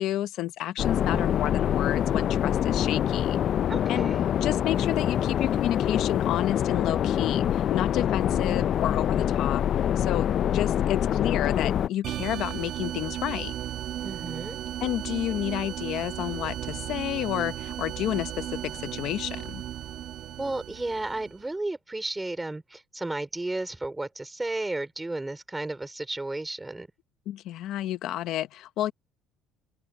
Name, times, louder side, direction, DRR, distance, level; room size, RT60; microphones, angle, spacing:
voice 1, 0.0-3.4 3.9-4.1 4.4-9.6 10.0-13.5 14.8-19.6 27.3-28.9, left 13 dB, 65° left, 0.9 m, -30 dB
sound 1, 0.8-11.9, left 10 dB, 45° left, 0.4 m, -25 dB
voice 2, 0.9-1.4 3.7-4.2 8.2-8.7 14.0-14.6 20.4-26.9, right 2 dB, 10° right, 4.8 m, -33 dB
sound 2, 12.0-21.4, right 12 dB, 60° right, 1.5 m, -35 dB
open air
cardioid pair, 135°, 0 cm